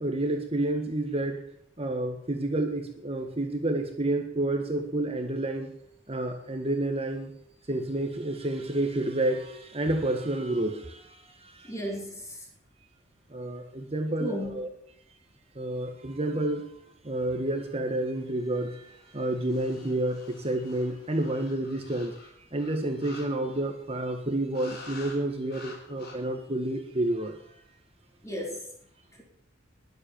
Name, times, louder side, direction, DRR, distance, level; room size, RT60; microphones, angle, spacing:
voice 1, 0.0-1.4 1.8-5.7 6.1-7.3 7.7-11.7 13.3-14.7 15.5-16.7 17.0-22.1 22.5-27.4, right 1 dB, 30° right, 4 dB, 1.5 m, -30 dB
voice 2, 11.6-12.5 14.2-14.6 28.2-28.7, equal, 15° left, -1 dB, 4.3 m, -34 dB
sound 1, 18.2-23.8 24.5-25.2 25.4-26.1, left 3 dB, 60° left, 4.9 m, -49 dB
20.5 x 7.8 x 7.0 m, 0.72 s
head